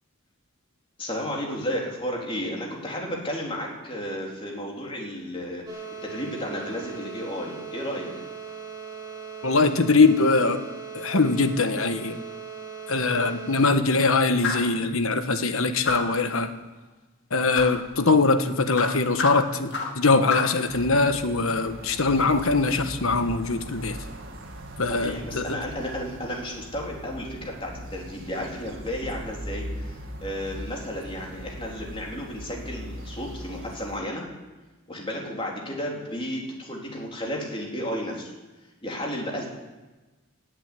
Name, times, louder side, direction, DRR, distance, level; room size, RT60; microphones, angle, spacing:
voice 1, 1.0-8.1 24.9-34.2 34.9-38.3 38.8-39.5, equal, 25° left, -1 dB, 3.5 m, -33 dB
sound 1, 5.7-13.7, right 6 dB, 15° right, 2.5 m, -39 dB
voice 2, 9.4-10.6 10.9-12.2 12.9-16.5 17.3-24.0 24.8-25.6, left 3 dB, 75° left, 9 dB, 1.2 m, -22 dB
sound 2, 14.4-14.8 15.8-16.2 17.5-17.8 18.7-20.0 20.3-20.6, left 4 dB, 55° left, 2.3 m, -29 dB
sound 3, 20.7-34.0, equal, 60° right, 2.1 m, -40 dB
16.5 x 8.2 x 9.7 m, 1.2 s
head